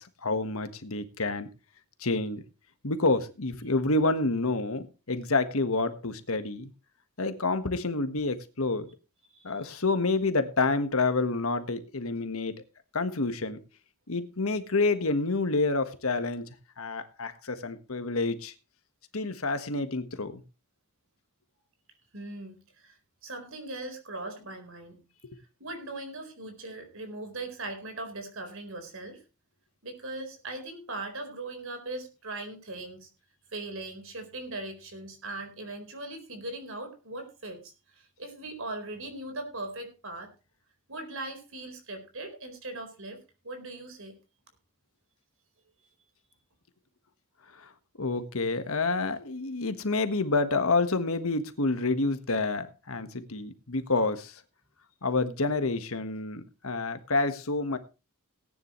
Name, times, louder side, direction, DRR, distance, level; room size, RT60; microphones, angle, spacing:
voice 1, 0.0-1.5 2.0-2.4 2.8-6.7 7.2-8.9 9.4-12.6 12.9-13.6 14.1-16.5 16.8-18.5 19.1-20.4 47.6-47.7 48.0-54.3 55.0-57.8, left 3 dB, 70° left, 1.5 m, -28 dB
voice 2, 9.3-9.7 22.1-25.0 25.4-29.2 29.8-33.1 33.5-40.3 40.9-43.2 43.4-44.1, right 2 dB, 65° right, 4.3 m, -40 dB
18.5 x 9.9 x 3.1 m
head